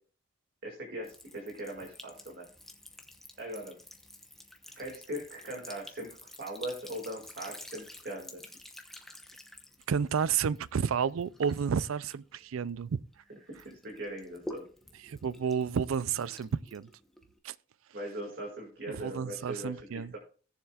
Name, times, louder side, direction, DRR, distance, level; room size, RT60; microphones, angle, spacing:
voice 1, 0.6-2.4 3.4-3.7 4.7-8.6 13.5-14.6 17.9-19.8, right 1 dB, 50° right, 2.2 m, -40 dB
Sink (filling or washing) / Trickle dribble, 1.0-13.2 13.5-17.4, left 1 dB, ahead, 0.9 m, -50 dB
voice 2, 9.9-13.0 15.0-16.9 17.4-17.5 18.9-20.2, right 7 dB, 90° right, 0.4 m, -31 dB
17.0 x 7.2 x 2.4 m
head